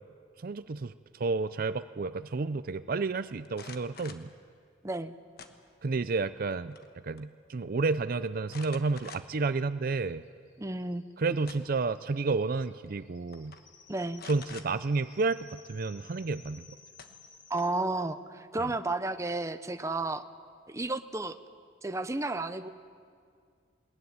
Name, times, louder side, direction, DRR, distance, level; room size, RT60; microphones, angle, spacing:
voice 1, 0.4-4.3 5.8-10.2 11.2-13.5 14.3-16.7 18.6-18.7, right 3 dB, 50° right, 13 dB, 0.5 m, -31 dB
sound 1, 3.5-4.3 5.4-6.0 6.4-6.9 7.2-7.3 8.5-9.5 10.0-10.1 11.1-11.9 12.9-13.0 13.3-13.6 14.2-14.7 16.4-16.5 17.0-17.8, left 5 dB, 55° left, 1.3 m, -48 dB
voice 2, 4.8-5.1 10.6-11.0 13.9-14.2 17.5-20.2 20.7-21.4 21.8-22.7, right 2 dB, 15° right, 10 dB, 0.7 m, -32 dB
sound 2, 8.0-8.1 8.3-8.4 8.7-17.7, left 5 dB, 85° left, 2.6 m, -58 dB
21.0 x 19.5 x 9.5 m, 2.2 s
head